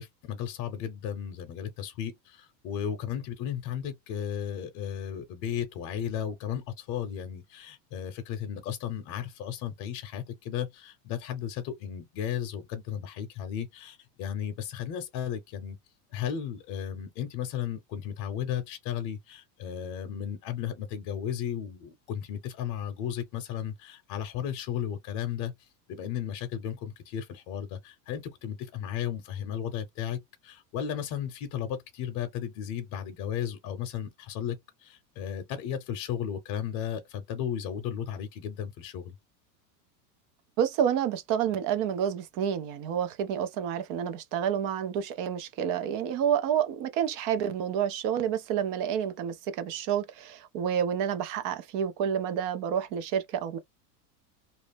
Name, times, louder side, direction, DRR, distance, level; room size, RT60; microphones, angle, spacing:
voice 1, 0.0-15.8 16.1-25.5 25.9-39.1, left 9 dB, 45° left, 0.7 m, -35 dB
voice 2, 40.6-53.6, right 9 dB, 40° right, 0.5 m, -29 dB
2.6 x 2.0 x 3.3 m
supercardioid pair, 130°, 49 cm